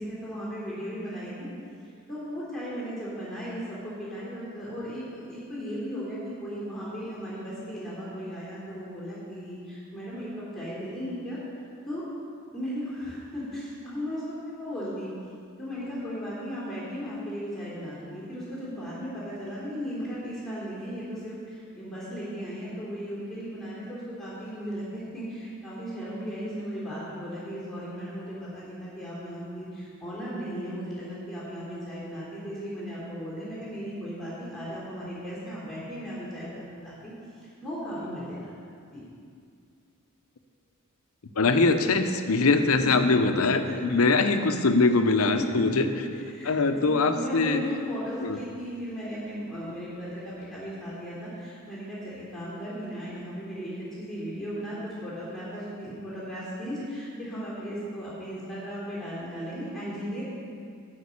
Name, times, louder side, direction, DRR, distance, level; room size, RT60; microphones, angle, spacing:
voice 1, 0.0-1.5 2.1-11.4 11.9-12.0 12.5-15.1 15.6-37.1 37.4-38.5 38.9-39.0 42.8-42.9 43.6-43.8 45.2-45.3 45.5-45.6 45.9-46.0 46.3-46.5 46.8-60.2, equal, ahead, -9 dB, 3.3 m, -36 dB
voice 2, 41.4-45.8 46.5-47.6 48.2-48.4, left 3 dB, 85° left, 7 dB, 0.8 m, -22 dB
12.5 x 5.3 x 8.5 m, 2.3 s
head